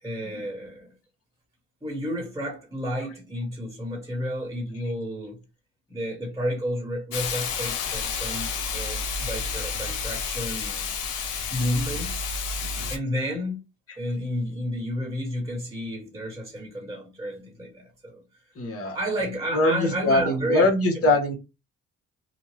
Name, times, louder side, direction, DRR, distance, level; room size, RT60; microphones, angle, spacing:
voice 1, 0.0-0.9 1.8-5.4 5.9-10.9 11.5-12.2 12.9-13.6 14.0-18.2 18.8-20.7 21.0-21.1, equal, 10° right, 1.2 m, -31 dB
Hiss, 7.1-13.0, left 5 dB, 85° left, 0.7 m, -30 dB
voice 2, 18.5-19.0 19.5-21.3, left 2 dB, 50° left, 1.2 m, -22 dB
2.8 x 2.3 x 3.2 m
cardioid pair, 90°, 30 cm